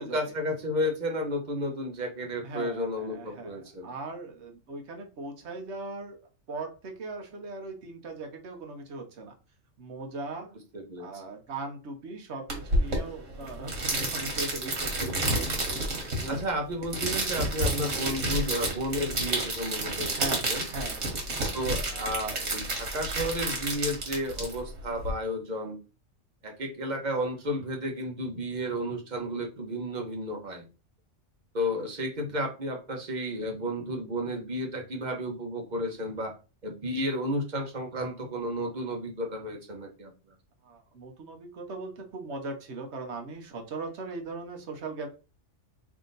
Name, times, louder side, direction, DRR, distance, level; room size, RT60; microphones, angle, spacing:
voice 1, 0.1-3.9 10.7-11.1 14.9-15.6 16.3-20.7 21.5-25.8 26.4-30.7 31.5-36.4 36.6-40.1, equal, 40° right, 3 dB, 1.0 m, -32 dB
voice 2, 2.4-6.2 6.5-9.4 9.8-10.6 11.0-15.4 16.2-16.4 20.1-21.4 40.6-45.1, right 3 dB, 65° right, 3 dB, 1.1 m, -39 dB
sound 1, 12.5-25.1, right 1 dB, 80° right, 1.7 m, -30 dB
3.5 x 2.8 x 3.9 m, 0.32 s
omnidirectional pair, 1.3 m